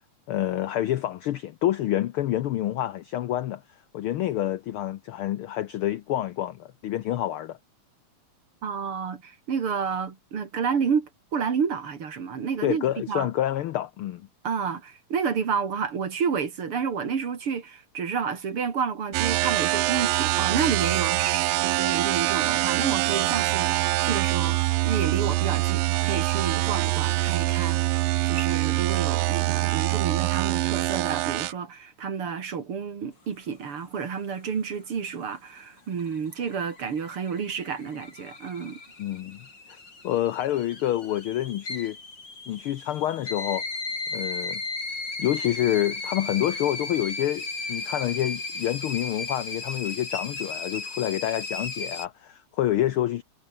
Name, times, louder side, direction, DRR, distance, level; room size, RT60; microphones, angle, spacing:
voice 1, 0.3-3.6 3.9-7.6 12.6-14.3 39.0-39.8 40.0-42.0 42.5-43.6 44.1-44.6 45.2-53.2, left 13 dB, 75° left, 1.2 m, -28 dB
voice 2, 8.6-13.3 14.4-24.6 24.8-38.8, right 6 dB, 50° right, 3.1 m, -30 dB
sound 1, 19.1-31.5, right 17 dB, 80° right, 1.6 m, -24 dB
sound 2, 35.8-52.1, left 3 dB, 35° left, 5.6 m, -36 dB
omnidirectional pair, 3.3 m